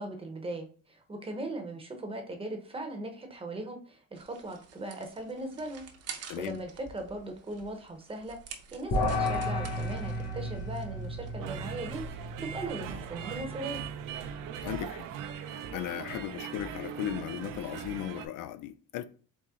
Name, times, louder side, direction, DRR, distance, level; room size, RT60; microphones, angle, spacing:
voice 1, 0.0-13.8, right 2 dB, 15° right, 0.8 m, -39 dB
sound 1, 4.1-12.1, right 6 dB, 50° right, 0.8 m, -49 dB
voice 2, 6.3-6.6 14.6-15.1 15.5-19.0, left 12 dB, 80° left, 0.5 m, -37 dB
sound 2, 8.9-14.4, left 1 dB, 50° left, 1.5 m, -34 dB
sound 3, 11.4-18.3, right 7 dB, 90° right, 0.7 m, -40 dB
4.2 x 3.1 x 3.6 m
cardioid pair, 145°, 32 cm